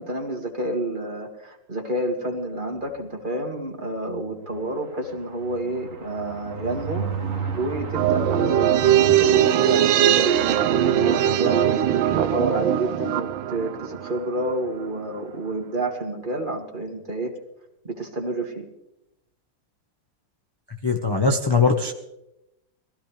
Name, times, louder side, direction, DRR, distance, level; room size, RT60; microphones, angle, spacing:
voice 1, 0.0-7.0 7.6-17.3 17.8-18.7, right 1 dB, 25° right, 0 dB, 2.4 m, -29 dB
sound 1, 4.1-12.9 13.3-13.5 13.7-13.8 14.1-14.4, right 6 dB, 45° right, 1.8 m, -34 dB
sound 2, 7.9-14.5 14.8-14.9, right 11 dB, 80° right, 1.5 m, -20 dB
voice 2, 20.8-21.9, left 4 dB, 20° left, 1 dB, 0.8 m, -20 dB
22.5 x 15.5 x 3.3 m, 0.86 s
omnidirectional pair, 2.1 m